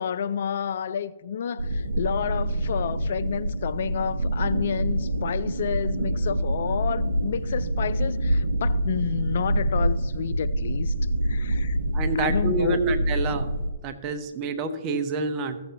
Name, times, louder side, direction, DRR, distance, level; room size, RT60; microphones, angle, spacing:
voice 1, 0.0-10.9 11.2-11.8 12.1-12.8, left 8 dB, 60° left, 0.3 m, -30 dB
sound 1, 1.6-13.7, right 1 dB, 85° right, 0.7 m, -26 dB
voice 2, 11.9-13.5 13.8-15.6, right 3 dB, 30° right, 0.9 m, -27 dB
15.0 x 7.0 x 2.9 m
hypercardioid pair, 130°, 0 cm